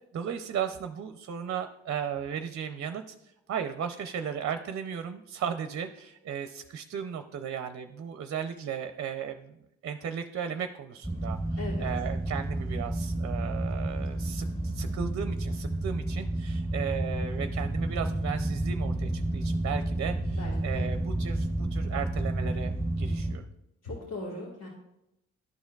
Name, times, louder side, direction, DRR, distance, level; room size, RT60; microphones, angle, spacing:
voice 1, 0.1-3.1 3.5-9.6 9.8-23.5, right 8 dB, 50° right, 8 dB, 0.5 m, -36 dB
sound 1, 11.0-23.3, right 1 dB, 15° left, 2.1 m, -30 dB
voice 2, 11.6-11.9 20.3-20.8 23.8-24.7, left 2 dB, 60° left, -4 dB, 1.6 m, -39 dB
12.0 x 4.4 x 2.3 m, 0.86 s
cardioid pair, 90°, 30 cm